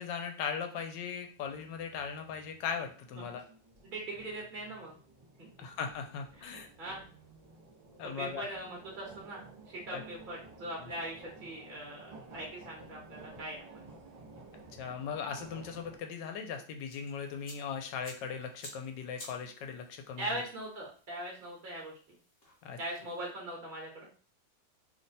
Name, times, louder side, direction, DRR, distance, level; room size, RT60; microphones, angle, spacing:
voice 1, 0.0-3.4 5.6-6.7 8.0-8.4 9.9-10.0 10.8-10.9 14.8-20.4 22.6-22.8, left 6 dB, 90° left, 5 dB, 1.2 m, -38 dB
sound 1, 1.2-16.0, right 3 dB, 70° right, 0.3 m, -54 dB
voice 2, 3.8-5.0 5.4-5.5 6.4-7.0 8.0-13.8 20.2-21.9 22.8-24.1, right 1 dB, 35° right, -3 dB, 0.9 m, -41 dB
sound 2, 16.8-23.3, left 1 dB, 40° left, 1.2 m, -54 dB
3.1 x 2.1 x 4.0 m, 0.39 s
omnidirectional pair, 1.9 m